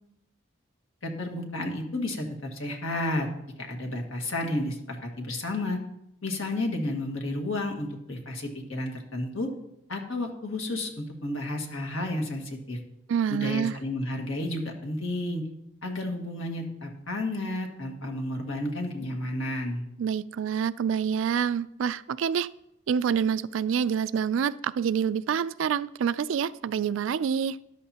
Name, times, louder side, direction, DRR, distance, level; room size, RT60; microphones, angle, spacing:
voice 1, 1.0-3.3 3.6-5.8 6.2-9.5 9.9-12.8 13.3-15.4 15.8-19.8, left 1 dB, 85° left, 2 dB, 1.8 m, -32 dB
voice 2, 13.1-13.8 20.0-22.5 22.9-27.6, right 7 dB, 75° right, 16 dB, 0.3 m, -27 dB
13.5 x 11.0 x 2.9 m, 0.81 s
head